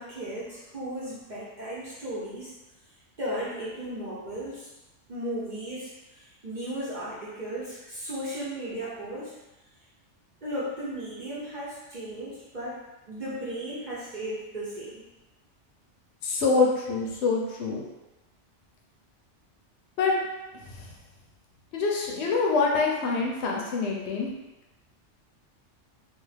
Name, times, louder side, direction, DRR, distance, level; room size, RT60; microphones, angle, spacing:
voice 1, 0.0-2.5 3.2-4.7 5.1-9.3 10.4-12.8 13.1-15.0, right 1 dB, 45° right, -8 dB, 0.7 m, -35 dB
voice 2, 16.2-17.8 20.0-20.1 21.7-24.3, left 4 dB, 70° left, -1 dB, 0.8 m, -25 dB
2.4 x 2.4 x 3.2 m, 1.1 s
omnidirectional pair, 1.2 m